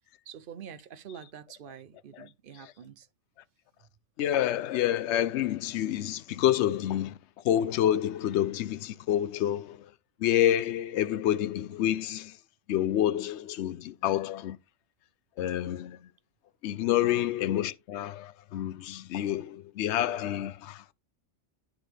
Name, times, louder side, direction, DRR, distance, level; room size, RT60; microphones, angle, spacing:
voice 1, 0.3-3.1 17.0-17.3, right 8 dB, 55° right, 0.7 m, -45 dB
voice 2, 4.2-7.2 7.4-9.9 10.2-12.4 12.7-14.6 15.4-16.1 16.6-20.9, left 12 dB, 70° left, 0.8 m, -28 dB
11.5 x 3.9 x 3.3 m
omnidirectional pair, 1.3 m